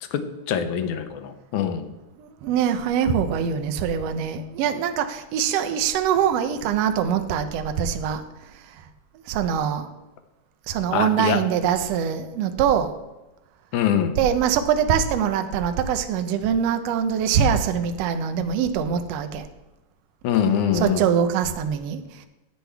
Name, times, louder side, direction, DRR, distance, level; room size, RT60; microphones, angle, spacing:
voice 1, 0.1-1.9 10.9-11.4 13.7-14.2 20.2-21.1, left 8 dB, 85° left, 8 dB, 2.1 m, -24 dB
voice 2, 2.2-8.8 9.3-9.9 10.7-12.9 14.2-19.5 20.7-22.3, right 8 dB, 75° right, 8 dB, 1.5 m, -23 dB
9.8 x 9.5 x 3.4 m, 1.0 s
omnidirectional pair, 3.5 m